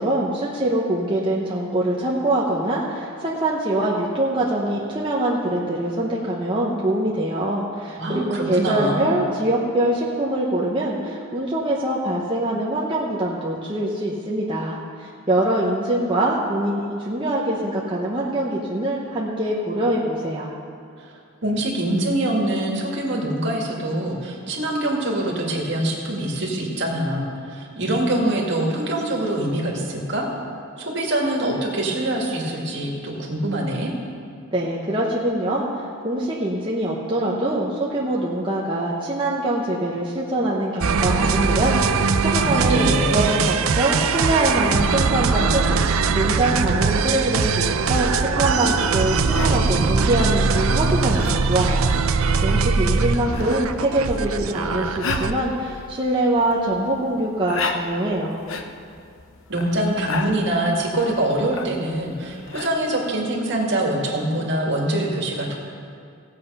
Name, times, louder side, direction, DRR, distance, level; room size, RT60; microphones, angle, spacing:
voice 1, 0.0-20.5 34.5-42.8 43.1-58.4, right 1 dB, 25° right, -4 dB, 0.9 m, -24 dB
voice 2, 8.0-9.1 21.0-21.1 21.4-30.3 30.8-33.9 42.3-43.3 59.5-65.6, right 1 dB, 55° right, -1 dB, 1.9 m, -24 dB
sound 1, 40.8-55.4, right 4 dB, 80° right, 0.6 m, -21 dB
sound 2, 48.7-62.7, left 4 dB, 70° left, 0.8 m, -36 dB
16.5 x 7.7 x 5.5 m, 2.3 s
head